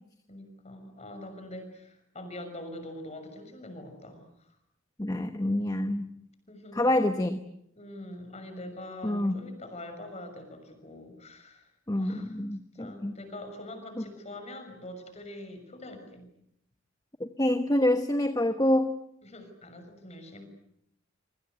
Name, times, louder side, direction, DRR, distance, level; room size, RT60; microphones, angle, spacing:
voice 1, 0.3-4.5 6.5-6.9 7.8-11.7 12.0-12.4 12.7-16.3 19.2-20.4, left 1 dB, 35° left, 7 dB, 6.4 m, -44 dB
voice 2, 5.0-6.1 6.7-7.4 9.0-9.4 11.9-13.2 14.0-14.1 17.2-18.9, left 1 dB, 20° left, 8 dB, 1.1 m, -27 dB
27.0 x 24.5 x 8.1 m, 0.74 s
head